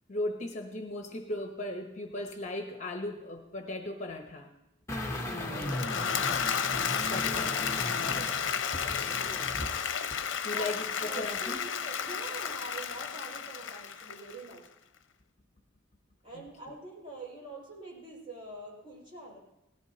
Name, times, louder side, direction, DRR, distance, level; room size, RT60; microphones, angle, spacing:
voice 1, 0.1-4.5 5.5-6.4 7.1-7.8 10.4-11.6 16.3-16.4, left 1 dB, 35° left, 4 dB, 1.0 m, -37 dB
sound 1, 4.9-9.8 10.1-10.2, left 1 dB, 15° left, 1.1 m, -37 dB
voice 2, 5.0-6.1 7.3-7.4 8.1-9.5 10.5-10.7 11.0-14.7 16.2-19.4, right 2 dB, 25° right, -4 dB, 5.6 m, -45 dB
Applause / Crowd, 5.4-14.6, left 7 dB, 70° left, 0.7 m, -32 dB
18.0 x 14.5 x 2.9 m, 0.90 s
head